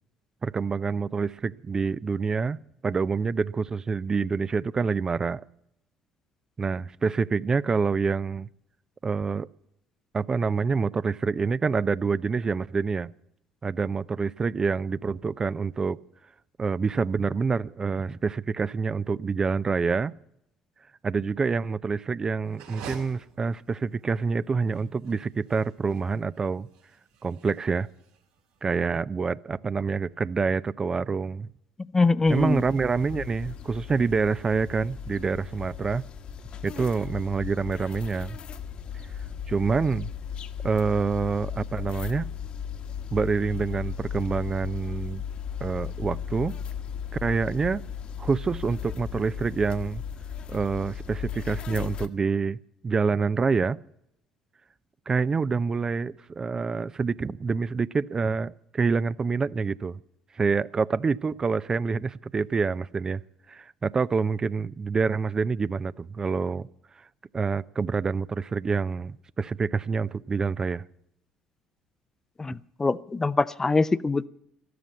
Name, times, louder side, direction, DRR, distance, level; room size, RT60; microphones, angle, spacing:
voice 1, 0.4-2.6 2.8-5.4 6.6-8.5 9.0-9.5 10.1-13.1 13.6-16.0 16.6-20.1 21.0-26.7 27.2-27.9 28.6-31.5 32.3-36.0 36.6-38.4 39.5-40.1 40.6-42.3 43.1-45.2 45.6-46.5 47.2-47.8 48.2-50.0 50.5-52.6 52.8-53.8 55.1-60.0 60.3-63.2 63.5-66.6 67.3-70.8, right 5 dB, 30° right, 0.5 m, -27 dB
sound 1, 22.4-28.6, right 6 dB, 75° right, 3.4 m, -47 dB
voice 2, 31.9-32.6 72.4-74.3, left 3 dB, 20° left, 0.6 m, -23 dB
sound 2, 32.3-52.1, left 8 dB, 50° left, 1.3 m, -36 dB
13.0 x 13.0 x 7.9 m
hypercardioid pair, 60°, 2 cm